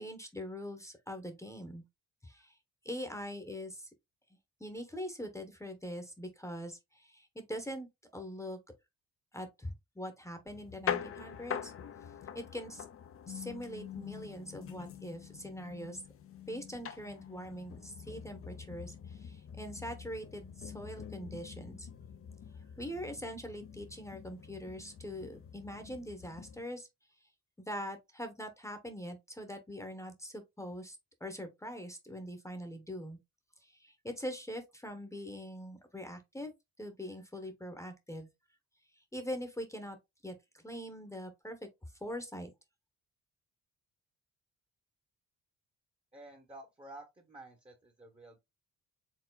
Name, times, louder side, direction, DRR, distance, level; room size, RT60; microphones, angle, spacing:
voice 1, 0.0-1.8 2.2-2.5 2.8-3.9 4.6-7.9 8.1-8.6 9.3-11.7 12.3-12.8 13.3-16.0 16.5-21.9 22.8-26.9 27.6-33.2 33.6-36.5 36.8-38.3 39.1-40.0 40.2-40.3 40.6-41.6 42.0-42.5, equal, 10° left, 1.0 m, -43 dB
sound 1, 10.5-26.6, left 8 dB, 45° left, 0.6 m, -44 dB
voice 2, 46.1-48.4, right 1 dB, 20° right, 1.1 m, -51 dB
4.6 x 3.6 x 2.3 m
cardioid pair, 90°, 30 cm